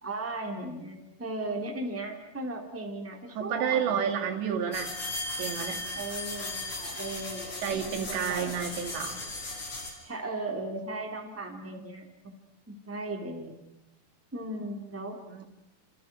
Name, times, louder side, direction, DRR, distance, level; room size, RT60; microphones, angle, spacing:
voice 1, 0.0-4.0 5.9-8.5 10.0-12.1 12.7-13.6 14.3-15.2, right 2 dB, 5° right, 1 dB, 2.9 m, -37 dB
voice 2, 3.4-4.9 5.4-5.9 7.6-9.2 15.3-15.5, right 8 dB, 85° right, 3 dB, 4.7 m, -30 dB
sound 1, 4.7-9.9, left 2 dB, 30° left, 5.1 m, -37 dB
29.5 x 27.5 x 6.3 m, 0.89 s
omnidirectional pair, 5.0 m